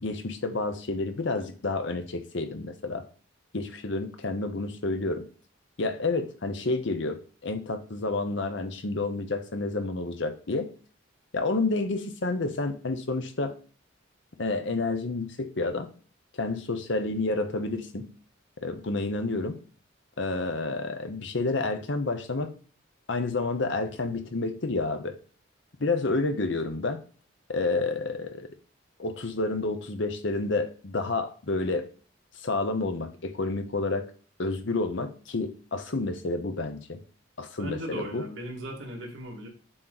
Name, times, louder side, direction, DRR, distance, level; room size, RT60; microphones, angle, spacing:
voice 1, 0.0-3.0 3.5-5.3 5.8-10.7 11.3-13.5 14.4-15.9 16.3-18.1 18.6-19.6 20.2-22.5 23.1-25.2 25.8-27.0 27.5-28.5 29.0-31.9 32.4-34.1 34.4-37.0 37.4-38.3, left 3 dB, 60° left, 8 dB, 0.8 m, -29 dB
voice 2, 37.6-39.5, equal, 70° right, -1 dB, 2.0 m, -37 dB
7.7 x 3.1 x 3.9 m, 0.40 s
head